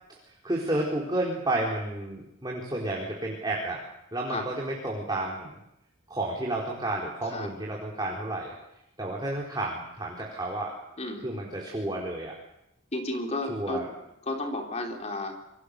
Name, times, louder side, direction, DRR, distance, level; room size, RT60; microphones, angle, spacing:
voice 1, 0.4-3.8 4.1-5.6 6.1-8.5 9.0-10.7 11.2-12.3 13.5-13.9, right 1 dB, 20° right, -3 dB, 4.8 m, -31 dB
voice 2, 12.9-13.9 14.3-15.3, left 2 dB, 35° left, 2 dB, 4.1 m, -32 dB
28.0 x 24.5 x 6.9 m, 0.85 s
head